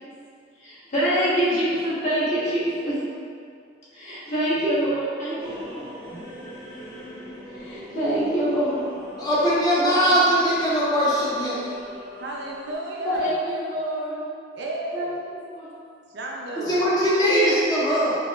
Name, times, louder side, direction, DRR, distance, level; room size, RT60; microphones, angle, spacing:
voice 1, 0.6-3.0 3.9-5.8 7.5-8.8 9.8-10.2 13.0-14.2 14.9-15.7 17.2-17.5, right 1 dB, 35° left, -10 dB, 1.2 m, -25 dB
sound 1, 5.4-12.7, equal, 80° left, 1.4 m, -40 dB
voice 2, 9.2-11.7 16.7-18.2, equal, 20° left, -8 dB, 0.6 m, -21 dB
voice 3, 12.2-13.3 14.5-15.2 16.1-16.8, right 1 dB, 60° right, -2 dB, 0.4 m, -32 dB
4.5 x 2.7 x 2.4 m, 2.3 s
head